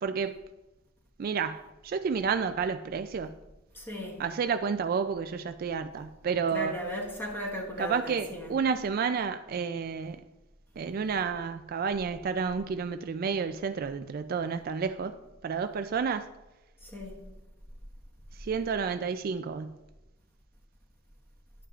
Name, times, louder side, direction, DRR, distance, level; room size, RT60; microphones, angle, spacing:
voice 1, 0.0-0.3 1.2-3.3 4.2-6.7 7.8-10.2 10.8-15.1 15.4-16.3 18.4-19.8, right 6 dB, 45° right, 0.3 m, -30 dB
voice 2, 3.7-4.2 6.5-8.5 16.8-17.2, equal, 10° left, 1.3 m, -36 dB
10.0 x 8.7 x 2.4 m
head